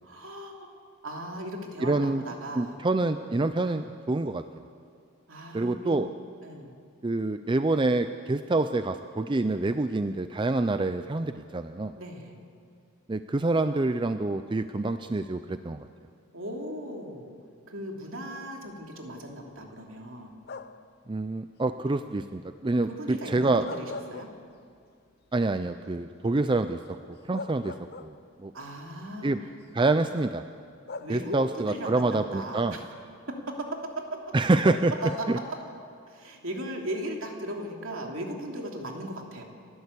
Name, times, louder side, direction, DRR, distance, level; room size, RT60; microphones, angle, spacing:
voice 1, 0.0-0.8 1.0-2.8 3.6-3.8 5.3-5.9 6.4-6.7 12.0-12.4 16.3-17.4 17.7-20.3 22.8-24.3 28.5-29.4 30.0-30.1 31.0-32.8 33.3-34.3 35.0-35.4 36.1-39.4, right 1 dB, 65° right, 1 dB, 3.0 m, -37 dB
voice 2, 1.8-2.2 2.5-4.4 5.5-6.1 7.0-11.9 13.1-15.9 21.1-23.6 25.3-26.8 27.3-27.7 28.0-28.1 28.4-28.5 29.2-29.4 29.7-30.4 31.1-32.7 34.3-34.9 35.3-35.4, right 2 dB, 20° right, 10 dB, 0.4 m, -26 dB
sound 1, 20.4-21.0 23.4-24.8 25.2-25.3 26.9-27.0 27.3-28.5 29.5-29.6 30.9-31.6 34.6-35.5, left 4 dB, 50° left, 0.7 m, -41 dB
30.0 x 12.5 x 8.3 m, 2.3 s
head